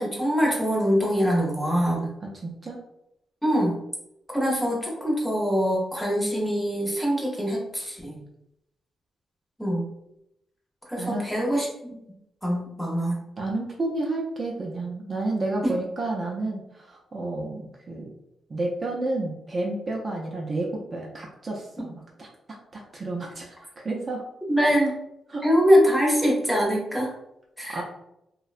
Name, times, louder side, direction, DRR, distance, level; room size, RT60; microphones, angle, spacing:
voice 1, 0.0-2.1 3.4-3.8 4.3-8.2 9.6-9.8 10.9-11.7 12.4-13.2 15.6-15.7 24.5-24.9 25.4-27.1 27.6-27.8, equal, 5° left, -3 dB, 0.6 m, -23 dB
voice 2, 2.2-2.8 11.0-11.2 13.4-18.1 18.5-22.3 22.7-24.2 25.3-25.4 27.7-27.8, right 2 dB, 30° right, -2 dB, 0.4 m, -31 dB
2.6 x 2.1 x 2.4 m, 0.83 s
wide cardioid pair, 140°, 0 cm